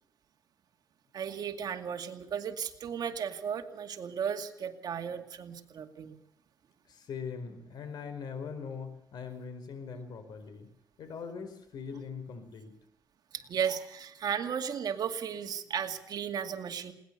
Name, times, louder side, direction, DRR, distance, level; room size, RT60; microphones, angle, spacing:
voice 1, 1.1-6.2 13.3-16.9, right 7 dB, 65° right, 5 dB, 2.4 m, -35 dB
voice 2, 6.9-10.7 11.0-12.7, left 6 dB, 75° left, 9 dB, 4.6 m, -41 dB
21.0 x 19.0 x 6.8 m, 0.80 s
cardioid pair, 115°, 7 cm